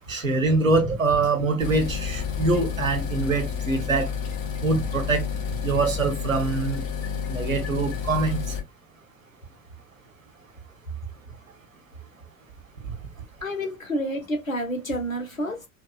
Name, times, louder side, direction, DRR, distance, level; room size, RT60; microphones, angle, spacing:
voice 1, 0.1-4.1 4.6-5.3 5.6-6.8 7.3-8.6, right 3 dB, 85° right, 0.9 m, -24 dB
sound 1, 1.6-8.6, left 6 dB, 50° left, 1.3 m, -30 dB
voice 2, 13.4-15.7, equal, 90° left, 0.8 m, -29 dB
4.2 x 2.3 x 2.3 m
figure-of-eight pair, 70°, 39 cm